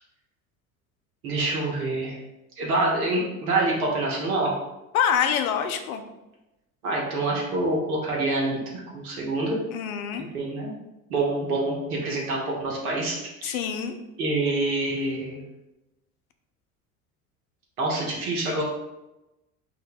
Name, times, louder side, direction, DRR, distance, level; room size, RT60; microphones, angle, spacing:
voice 1, 1.2-2.2 2.6-4.5 6.8-9.5 10.1-10.7 11.1-13.5 14.2-15.4 17.8-18.6, right 2 dB, 80° right, -3 dB, 1.0 m, -26 dB
voice 2, 4.9-6.0 9.7-10.3 13.4-14.0, left 8 dB, 75° left, 7 dB, 0.5 m, -25 dB
2.5 x 2.2 x 3.9 m, 0.98 s
hypercardioid pair, 70°, 43 cm